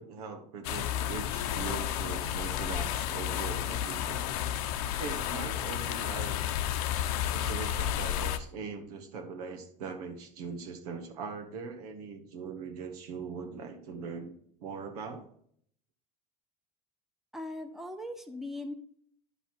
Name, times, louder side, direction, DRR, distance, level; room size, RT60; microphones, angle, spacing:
voice 1, 0.0-4.2 5.0-6.5 7.3-14.3 14.6-15.3, right 5 dB, 90° right, 4 dB, 1.8 m, -41 dB
sound 1, 0.6-8.4, left 10 dB, 80° left, 0.8 m, -32 dB
voice 2, 17.3-18.7, left 1 dB, ahead, 5 dB, 1.0 m, -39 dB
11.0 x 5.8 x 4.6 m, 0.63 s
supercardioid pair, 120°, 19 cm